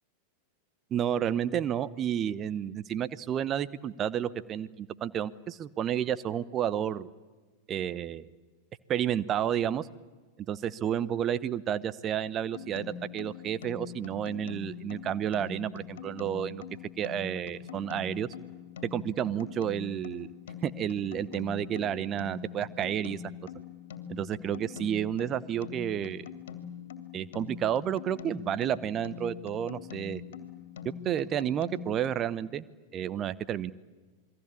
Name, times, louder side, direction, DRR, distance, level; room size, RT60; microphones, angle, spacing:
voice 1, 0.9-7.1 7.7-8.3 8.9-9.9 10.5-16.6 17.0-18.3 18.8-20.3 20.6-23.2 24.1-26.2 27.1-30.2 30.8-32.6 32.9-33.7, right 10 dB, 30° right, 17 dB, 0.9 m, -31 dB
sound 1, 12.5-32.1, left 8 dB, 60° left, 2.6 m, -43 dB
28.0 x 22.0 x 8.6 m, 1.3 s
figure-of-eight pair, 90°, 0 cm